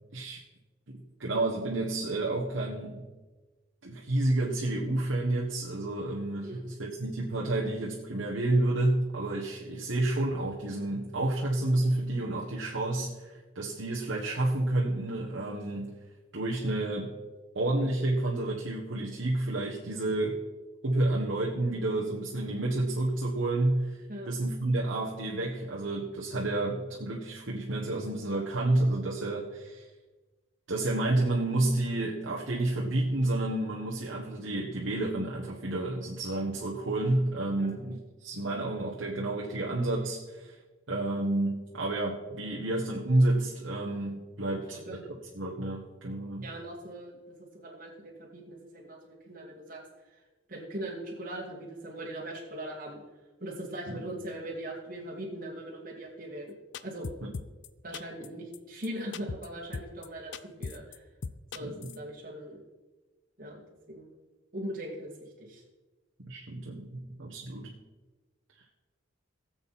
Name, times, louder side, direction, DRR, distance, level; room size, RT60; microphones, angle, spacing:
voice 1, 0.9-3.1 3.8-15.9 16.3-17.1 17.5-20.4 20.8-24.0 24.3-29.8 30.7-40.5 40.9-44.8 45.0-46.4 53.9-54.0 57.2-57.3 61.6-61.9 66.3-67.8, right 2 dB, 80° right, -3 dB, 1.5 m, -30 dB
voice 2, 44.5-45.0 46.4-49.8 50.5-53.0 53.4-56.5 56.8-57.1 57.8-61.0 61.5-62.6 63.4-63.6 63.9-64.2 64.5-65.6, right 1 dB, 45° right, -3 dB, 2.5 m, -40 dB
sound 1, 56.7-57.7 57.9-58.3 58.5-58.6 58.8-58.9 59.1-59.5 59.7-60.1 60.3-61.0 61.2-62.0, left 4 dB, 65° left, 0.5 m, -37 dB
18.5 x 7.8 x 4.3 m, 1.2 s
head